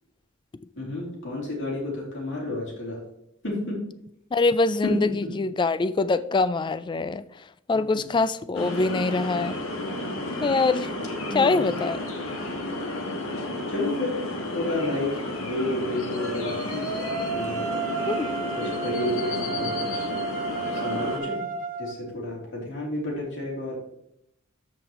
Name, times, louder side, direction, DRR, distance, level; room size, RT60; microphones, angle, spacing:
voice 1, 0.8-3.0 3.4-3.8 4.8-5.3 11.3-11.7 13.7-14.2 14.5-15.1 15.4-16.8 17.3-17.6 18.6-20.0 20.7-21.4 21.8-23.8, left 1 dB, 60° left, 3.0 m, -30 dB
voice 2, 4.3-7.2 7.7-9.6 10.4-10.9 11.3-12.1 18.0-18.3, left 3 dB, 20° left, 0.3 m, -24 dB
sound 1, 8.5-21.2, left 1 dB, 80° left, 1.3 m, -32 dB
sound 2, 16.1-21.9, right 3 dB, 40° right, 1.4 m, -32 dB
13.0 x 5.2 x 3.0 m
head